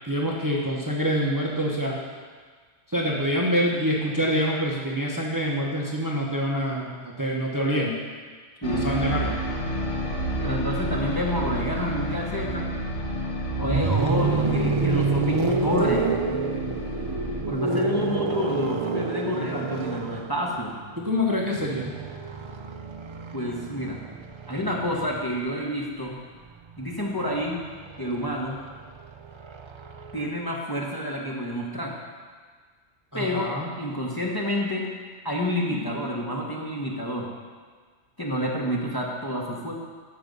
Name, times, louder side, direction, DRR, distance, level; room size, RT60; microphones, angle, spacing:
voice 1, 0.1-2.0 2.9-8.0 8.7-9.3 14.4-14.8 21.0-22.0 33.1-33.7 35.7-35.9, equal, 15° right, -2 dB, 1.0 m, -26 dB
sound 1, 8.6-17.4, right 1 dB, 65° left, 1.4 m, -30 dB
voice 2, 10.4-12.7 13.6-16.1 17.5-20.7 23.3-24.1 24.5-26.2 26.8-27.6 28.0-28.6 30.1-31.9 33.1-33.5 33.8-34.8 35.2-37.3 38.2-39.7, equal, 20° left, -3 dB, 1.1 m, -29 dB
sound 2, 13.5-25.4 26.7-30.3, right 3 dB, 50° right, 0.3 m, -29 dB
13.5 x 5.5 x 5.3 m, 1.6 s
omnidirectional pair, 1.3 m